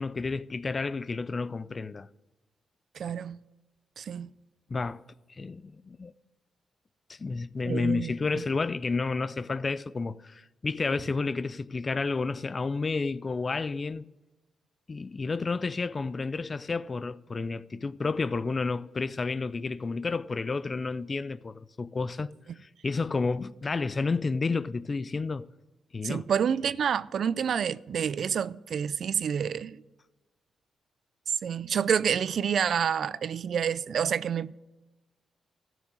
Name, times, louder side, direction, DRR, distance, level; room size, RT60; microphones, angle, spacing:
voice 1, 0.0-2.1 4.7-5.0 5.4-6.1 7.1-14.1 14.9-22.3 22.6-25.5 25.9-26.2, left 4 dB, 35° left, 0.5 m, -31 dB
voice 2, 3.0-3.4 4.0-4.3 7.6-8.4 26.0-29.8 31.4-34.5, right 8 dB, 65° right, 0.4 m, -28 dB
14.0 x 6.2 x 9.4 m
cardioid pair, 85°, 0 cm